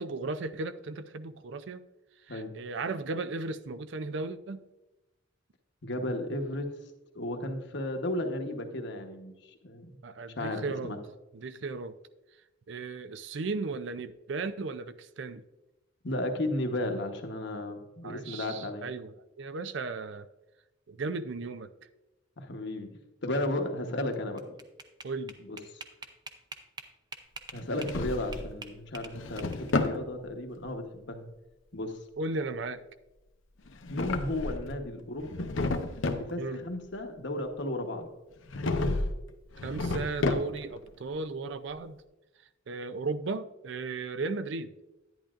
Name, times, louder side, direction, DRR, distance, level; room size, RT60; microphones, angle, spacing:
voice 1, 0.0-1.8 2.3-4.6 10.0-10.9 11.3-12.0 12.7-15.4 18.0-20.3 20.9-21.7 25.0-25.4 32.2-32.8 36.4-36.6 39.6-42.0 42.7-44.7, right 3 dB, 65° right, 13 dB, 0.5 m, -35 dB
voice 2, 5.8-6.7 7.1-9.3 9.6-9.9 10.3-11.0 16.0-18.8 22.4-22.9 23.2-24.6 25.5-25.6 27.5-31.2 31.7-32.0 33.9-35.5 36.0-38.1, left 1 dB, 65° left, 4 dB, 1.1 m, -34 dB
sound 1, 24.1-28.0 28.3-29.9, right 3 dB, 20° right, 0.6 m, -44 dB
Drawer open or close, 27.6-28.5 29.0-30.0 33.7-34.8 35.2-36.3 38.5-39.2 39.5-40.8, left 2 dB, 80° left, 0.8 m, -31 dB
10.5 x 10.0 x 2.5 m, 1.0 s
head